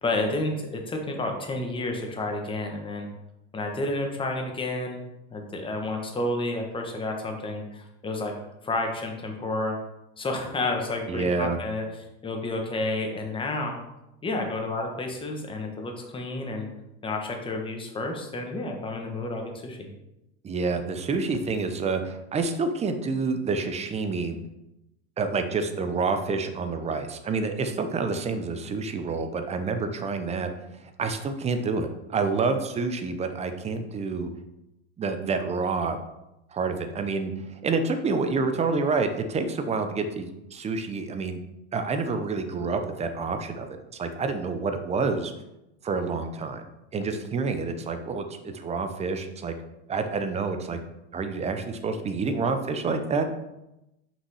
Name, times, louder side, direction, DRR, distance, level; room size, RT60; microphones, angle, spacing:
voice 1, 0.0-3.1 3.5-5.0 5.3-8.3 8.6-9.8 10.2-11.9 12.2-13.8 14.2-16.7 17.0-19.9, left 2 dB, 15° left, 2 dB, 1.3 m, -30 dB
voice 2, 11.1-11.6 20.4-24.4 25.2-30.5 31.0-34.3 35.0-36.0 36.5-41.4 41.7-45.3 45.8-46.6 46.9-49.5 49.9-50.8 51.1-53.3, right 4 dB, 20° right, 7 dB, 0.7 m, -28 dB
5.8 x 5.8 x 4.8 m, 0.92 s
supercardioid pair, 135°, 33 cm